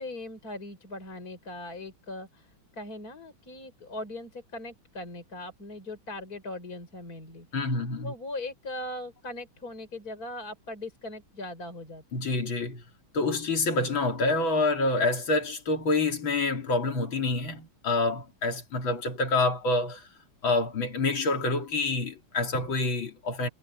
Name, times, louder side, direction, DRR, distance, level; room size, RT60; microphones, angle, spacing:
voice 1, 0.0-7.5 8.0-12.2, left 2 dB, 45° left, 5.5 m, -40 dB
voice 2, 7.5-8.1 12.1-12.8 13.1-20.1 20.4-23.5, left 2 dB, 80° left, 3.6 m, -27 dB
omnidirectional pair, 2.2 m